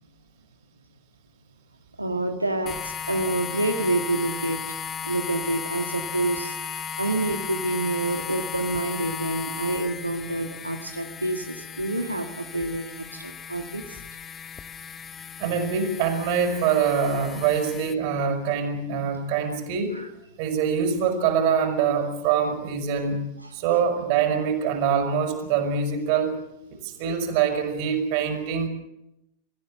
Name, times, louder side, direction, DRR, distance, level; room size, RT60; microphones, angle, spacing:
voice 1, 2.0-4.8 5.0-14.0 19.9-20.1, right 2 dB, 85° right, 5 dB, 1.6 m, -28 dB
sound 1, 2.7-17.9, left 7 dB, 25° left, 1.0 m, -36 dB
voice 2, 15.4-19.9 20.4-23.2 23.5-26.3 26.7-28.7, right 7 dB, 45° right, 4 dB, 5.9 m, -24 dB
25.5 x 15.0 x 7.8 m, 0.85 s
figure-of-eight pair, 90°, 0 cm